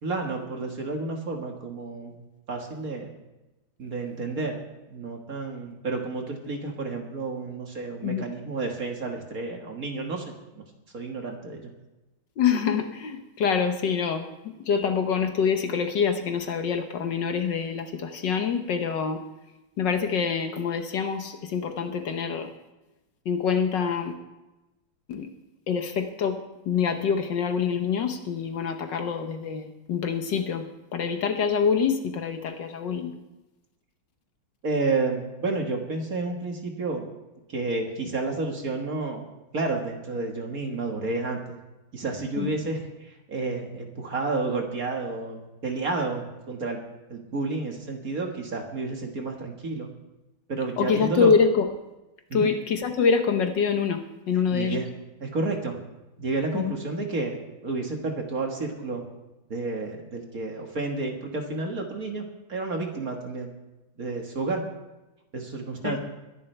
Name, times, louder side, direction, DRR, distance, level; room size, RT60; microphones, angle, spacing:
voice 1, 0.0-2.2 2.5-3.1 3.8-10.7 10.9-11.7 34.6-37.1 37.5-41.6 41.9-46.8 47.1-49.9 50.5-51.3 52.3-52.5 54.5-54.9 55.2-55.8 56.2-59.0 59.5-63.5 64.0-64.7 65.3-66.0, right 3 dB, 45° right, 2 dB, 2.0 m, -31 dB
voice 2, 12.4-19.2 19.8-22.5 23.2-24.1 25.1-25.3 25.7-26.4 26.7-33.1 42.4-42.5 50.8-51.7 52.3-54.8 56.5-56.7 65.8-66.0, left 6 dB, 65° left, 6 dB, 1.6 m, -25 dB
21.5 x 11.0 x 3.3 m, 1.0 s
omnidirectional pair, 2.3 m